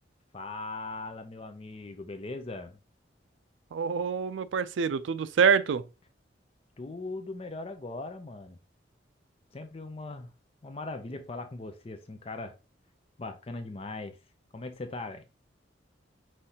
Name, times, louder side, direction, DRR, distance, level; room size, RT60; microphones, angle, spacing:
voice 1, 0.3-2.8 6.8-8.6 9.5-10.3 10.6-12.6 13.2-14.2 14.5-15.2, left 2 dB, 30° left, 0.5 m, -39 dB
voice 2, 3.7-5.8, right 6 dB, 80° right, 0.4 m, -26 dB
5.5 x 3.2 x 2.8 m
head